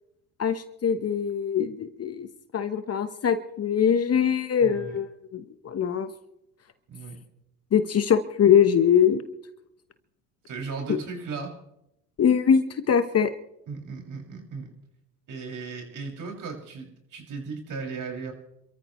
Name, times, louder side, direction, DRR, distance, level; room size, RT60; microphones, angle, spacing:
voice 1, 0.4-2.3 2.5-6.1 7.7-9.2 12.2-13.3, left 8 dB, 35° left, 10 dB, 1.2 m, -22 dB
voice 2, 4.6-5.0 6.9-7.2 10.5-11.6 13.7-14.7 15.3-18.3, right 4 dB, 45° right, 1 dB, 6.4 m, -36 dB
28.0 x 14.0 x 3.2 m, 0.81 s
hypercardioid pair, 85°, 43 cm